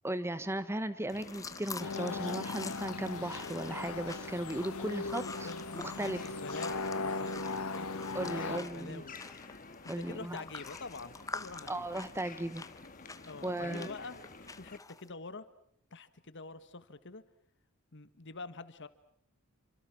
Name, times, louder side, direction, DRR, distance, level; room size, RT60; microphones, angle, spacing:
voice 1, 0.0-5.5 5.7-6.2 8.1-9.0 9.9-10.4 11.7-12.6 13.4-13.9, right 1 dB, 10° right, 14 dB, 1.1 m, -36 dB
sound 1, 1.1-14.8, left 3 dB, 40° left, 1.8 m, -50 dB
sound 2, 1.1-15.1, left 3 dB, 15° left, 1.0 m, -47 dB
sound 3, 1.8-8.6, left 3 dB, 75° left, 1.3 m, -38 dB
voice 2, 4.7-9.2 10.0-11.8 13.3-14.3 14.6-15.5 15.9-17.2 17.9-18.9, left 3 dB, 55° left, 13 dB, 1.6 m, -45 dB
29.0 x 25.5 x 6.2 m, 0.69 s
head